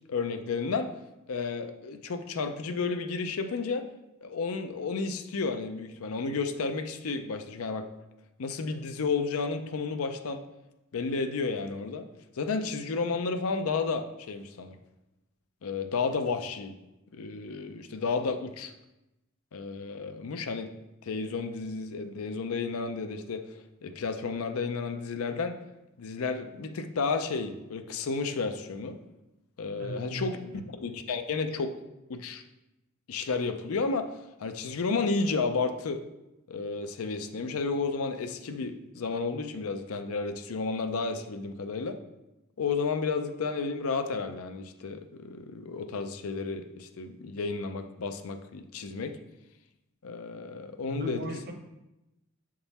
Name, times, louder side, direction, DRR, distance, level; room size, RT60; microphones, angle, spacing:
voice 1, 0.1-0.9 1.3-3.8 4.2-7.9 8.4-10.4 10.9-12.0 12.4-14.8 15.6-16.7 17.1-18.7 19.5-20.7 21.0-23.5 23.8-25.6 26.0-29.0 29.6-30.4 30.8-31.7 32.1-32.4 33.1-34.1 34.4-36.0 36.5-42.0 42.6-49.2 50.0-51.2, left 4 dB, 85° left, 8 dB, 0.5 m, -32 dB
voice 2, 29.7-30.7 50.8-51.5, left 1 dB, 45° right, 3 dB, 0.8 m, -37 dB
6.9 x 3.7 x 4.1 m, 0.95 s
head